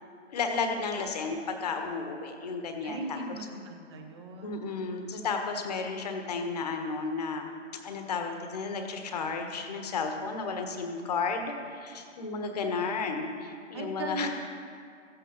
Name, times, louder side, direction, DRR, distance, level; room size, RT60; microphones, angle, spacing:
voice 1, 0.3-3.4 4.4-7.6 7.8-14.3, left 4 dB, 30° left, 5 dB, 1.3 m, -33 dB
voice 2, 2.8-4.8 13.7-14.3, right 2 dB, 20° right, 4 dB, 1.0 m, -38 dB
14.5 x 8.9 x 5.7 m, 2.3 s
figure-of-eight pair, 140°, 38 cm